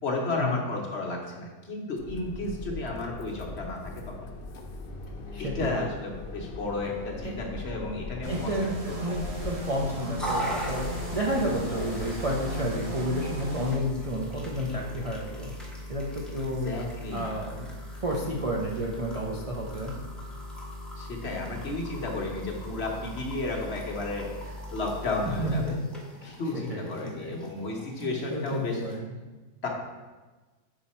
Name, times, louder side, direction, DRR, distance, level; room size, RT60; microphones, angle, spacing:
voice 1, 0.0-4.3 5.4-9.0 11.8-11.9 16.6-17.3 21.0-25.8 26.2-28.8 29.6-29.7, left 2 dB, 50° left, 0 dB, 1.1 m, -33 dB
sound 1, 2.0-12.1, left 3 dB, 70° left, 0.5 m, -40 dB
voice 2, 5.3-5.9 7.2-7.3 8.3-15.5 15.9-16.7 17.1-17.7 18.0-20.0 25.3-25.8 26.2-27.4 28.0-29.2, equal, 65° right, -2 dB, 0.3 m, -31 dB
sound 2, 8.2-13.8, equal, 30° right, 0.8 m, -37 dB
sound 3, 10.2-29.0, equal, ahead, 0.8 m, -39 dB
5.5 x 5.0 x 4.2 m, 1.3 s
omnidirectional pair, 1.7 m